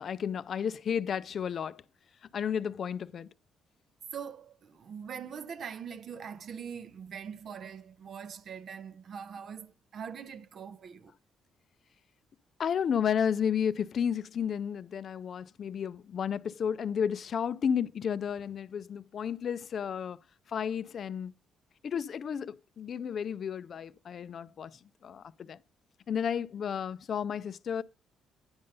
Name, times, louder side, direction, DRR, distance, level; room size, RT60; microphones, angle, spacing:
voice 1, 0.0-1.8 2.3-3.3 12.6-20.2 20.5-21.3 21.8-25.6 26.1-27.8, left 8 dB, 55° left, 0.4 m, -32 dB
voice 2, 4.1-11.1, right 7 dB, 60° right, 0.5 m, -42 dB
9.7 x 5.3 x 5.4 m
cardioid pair, 90°, 0 cm